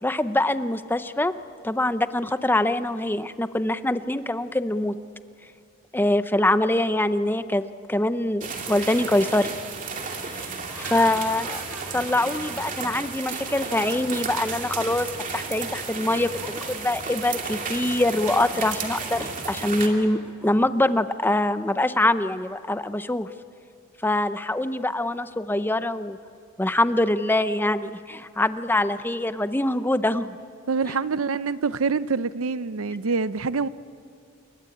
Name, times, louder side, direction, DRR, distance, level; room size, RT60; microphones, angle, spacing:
voice 1, 0.0-1.3 1.6-4.9 5.9-9.5 10.3-10.5 10.8-11.6 11.9-15.1 15.3-23.3 24.0-26.2 26.6-30.4 30.9-31.0, left 1 dB, 10° left, 12 dB, 0.6 m, -24 dB
sound 1, 8.4-19.9, right 4 dB, 40° right, 2.6 m, -33 dB
sound 2, 10.7-13.3 13.7-14.1 14.6-14.9 15.4-15.7 16.4-16.5 17.2-17.4 18.0-18.1 19.1-19.3 20.2-20.6, equal, 10° right, 2.1 m, -45 dB
voice 2, 30.7-33.7, right 4 dB, 80° right, 15 dB, 0.7 m, -25 dB
28.0 x 23.0 x 8.6 m, 2.3 s
head